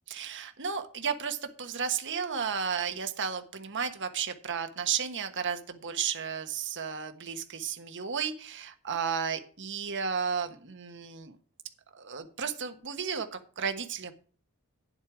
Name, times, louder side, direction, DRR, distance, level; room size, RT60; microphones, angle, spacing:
voice 1, 0.1-11.3 11.9-14.1, right 6 dB, 55° right, 7 dB, 1.3 m, -33 dB
10.0 x 8.1 x 5.0 m, 0.41 s
head